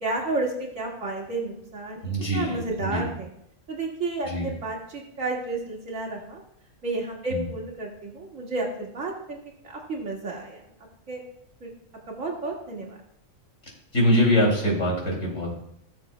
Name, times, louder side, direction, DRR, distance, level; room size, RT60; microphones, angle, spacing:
voice 1, 0.0-3.3 3.7-6.4 6.8-9.4 9.9-10.6 11.1-11.2 11.6-11.7 12.1-13.0, right 2 dB, 75° right, -3 dB, 2.3 m, -31 dB
voice 2, 2.0-3.0 4.2-4.5 7.3-7.4 13.9-15.5, equal, 70° left, -1 dB, 3.2 m, -23 dB
16.5 x 6.9 x 2.2 m, 0.72 s
omnidirectional pair, 1.4 m